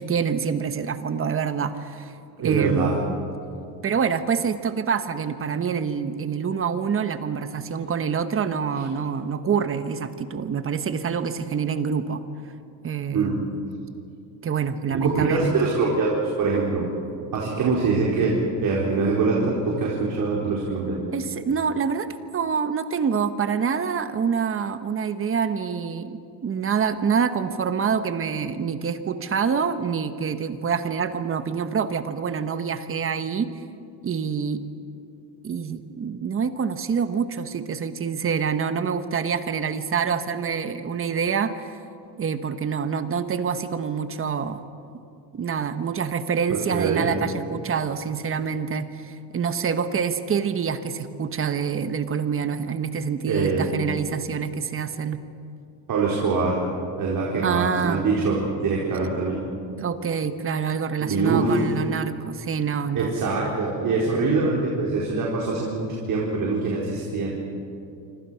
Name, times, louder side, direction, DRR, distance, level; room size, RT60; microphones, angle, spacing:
voice 1, 0.0-2.1 2.4-3.0 3.8-12.2 12.8-13.4 14.4-15.7 21.1-33.5 34.0-34.6 35.4-41.8 42.2-44.6 45.3-55.2 57.4-58.0 59.8-63.1, right 6 dB, 25° right, 10 dB, 1.2 m, -26 dB
voice 2, 2.4-2.9 13.1-13.4 14.9-16.9 17.3-21.0 46.7-47.1 53.2-53.7 55.9-56.6 57.0-59.4 61.0-61.7 62.9-67.3, right 4 dB, 45° right, -4 dB, 4.5 m, -24 dB
27.0 x 25.5 x 5.8 m, 2.6 s
cardioid pair, 140°, 47 cm